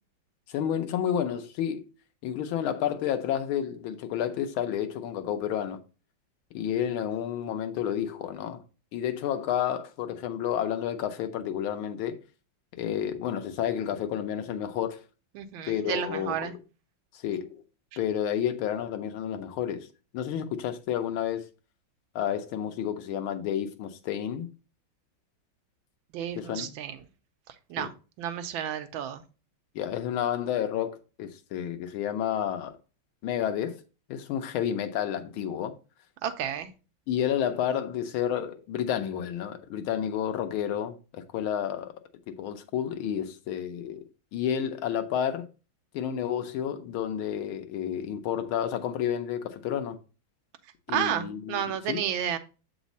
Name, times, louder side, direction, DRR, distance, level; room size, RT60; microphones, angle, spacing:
voice 1, 0.5-1.9 2.2-5.8 6.5-8.6 8.9-12.2 12.7-15.0 15.6-16.6 17.2-17.6 18.0-19.9 20.1-21.4 22.1-24.5 26.4-26.7 27.8-27.9 29.7-32.7 33.2-33.8 34.1-35.7 37.1-41.9 42.3-44.0 44.3-45.5 45.9-50.0 50.9-51.6 51.9-52.0, left 9 dB, 90° left, 1.6 m, -30 dB
voice 2, 15.3-16.5 26.1-27.0 27.7-27.9 28.2-29.2 36.2-36.7 50.9-52.4, right 9 dB, 80° right, 1.5 m, -31 dB
7.2 x 4.0 x 4.0 m
omnidirectional pair, 2.2 m